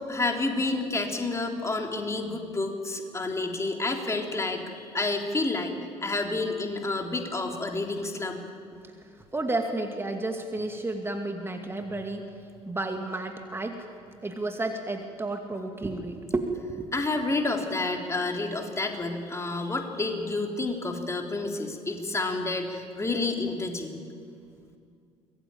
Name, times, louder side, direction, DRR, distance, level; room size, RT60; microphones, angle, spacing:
voice 1, 0.1-4.6 4.9-5.8 6.0-8.4 16.9-24.0, left 3 dB, 15° left, 3 dB, 3.6 m, -29 dB
voice 2, 9.3-12.3 12.6-13.9 14.2-16.9, right 2 dB, 15° right, 4 dB, 2.4 m, -31 dB
25.0 x 21.5 x 8.9 m, 2.3 s
figure-of-eight pair, 55°, 16 cm